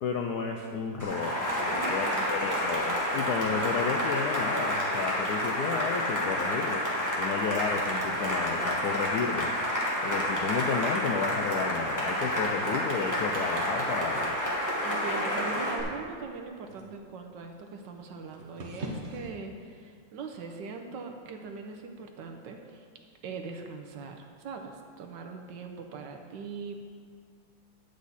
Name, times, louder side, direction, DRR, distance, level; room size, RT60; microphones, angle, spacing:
voice 1, 0.0-6.8 7.2-9.5 10.0-14.4, left 5 dB, 75° left, 3 dB, 0.9 m, -32 dB
Cheering / Applause, 1.0-15.8, equal, 10° left, 1.3 m, -29 dB
voice 2, 1.7-2.6 14.8-22.9 23.2-26.8, right 4 dB, 70° right, 4 dB, 1.3 m, -41 dB
sound 1, 15.0-19.3, right 1 dB, 45° right, 1.0 m, -46 dB
9.8 x 8.3 x 4.1 m, 2.1 s
omnidirectional pair, 2.3 m